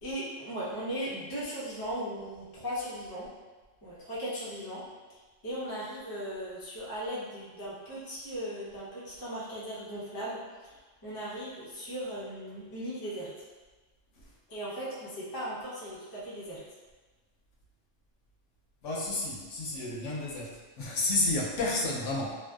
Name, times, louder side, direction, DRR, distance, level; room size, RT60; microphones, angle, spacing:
voice 1, 0.0-3.3 3.8-13.3 14.5-16.6, equal, 35° left, -7 dB, 0.3 m, -38 dB
voice 2, 18.8-22.3, left 2 dB, 75° left, -4 dB, 0.9 m, -31 dB
2.6 x 2.1 x 2.2 m, 1.3 s
omnidirectional pair, 1.3 m